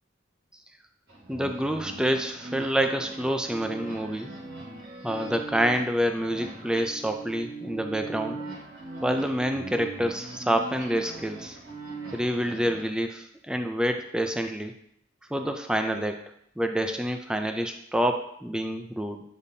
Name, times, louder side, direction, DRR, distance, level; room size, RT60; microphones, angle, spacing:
sound 1, 1.1-12.8, right 3 dB, 75° right, 2.5 m, -40 dB
voice 1, 1.3-4.3 5.0-8.4 9.0-11.6 12.1-14.7 15.3-16.2 16.6-19.2, equal, 5° right, 5 dB, 0.4 m, -27 dB
8.3 x 5.3 x 2.7 m, 0.71 s
head